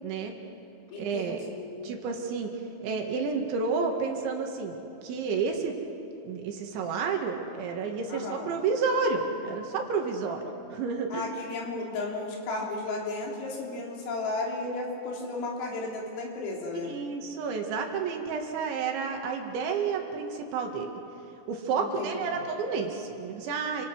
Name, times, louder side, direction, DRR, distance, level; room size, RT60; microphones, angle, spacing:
voice 1, 0.0-0.3 1.0-1.4 1.8-2.5 2.8-4.8 5.0-5.7 6.2-10.4 10.7-11.2 16.7-20.9 21.5-23.9, right 5 dB, 70° right, 2 dB, 4.0 m, -30 dB
voice 2, 0.9-1.9 8.1-8.5 11.1-16.9 21.8-22.4, left 2 dB, 80° left, -2 dB, 6.2 m, -34 dB
29.0 x 25.5 x 6.2 m, 3.0 s
omnidirectional pair, 5.9 m